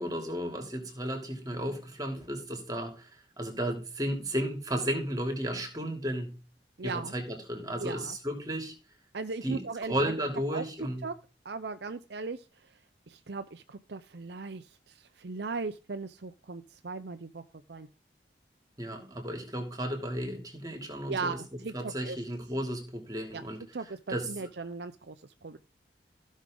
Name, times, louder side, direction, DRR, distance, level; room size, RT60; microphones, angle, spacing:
voice 1, 0.0-6.4 6.8-8.7 9.4-11.1 18.8-21.4 21.7-23.6 24.1-24.5, equal, 20° right, 4 dB, 3.0 m, -34 dB
voice 2, 6.8-7.1 7.8-8.2 9.1-10.2 10.5-10.6 11.0-11.1 11.4-12.8 13.1-17.4 17.7-17.9 21.1-22.2 23.3-23.4 23.7-25.6, right 4 dB, 70° right, 9 dB, 0.7 m, -38 dB
15.5 x 6.4 x 3.8 m, 0.33 s
head